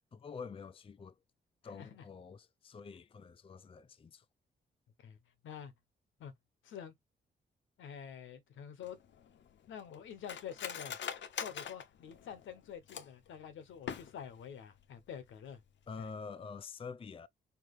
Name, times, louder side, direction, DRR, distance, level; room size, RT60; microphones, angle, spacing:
voice 1, 0.1-1.1 1.6-4.2 15.9-17.3, left 5 dB, 30° left, 0.4 m, -47 dB
voice 2, 1.7-2.0 5.0-5.2 5.4-5.7 6.2-6.3 6.6-6.9 7.8-9.0 9.7-11.0 11.4-15.6 16.0-16.1, left 8 dB, 85° left, 1.1 m, -47 dB
Cutlery silverware, 8.8-13.3 13.7-14.4 14.8-14.9 15.2-15.6 15.9-16.1, left 8 dB, 70° left, 0.8 m, -43 dB
4.6 x 2.9 x 3.2 m
cardioid pair, 60°, 20 cm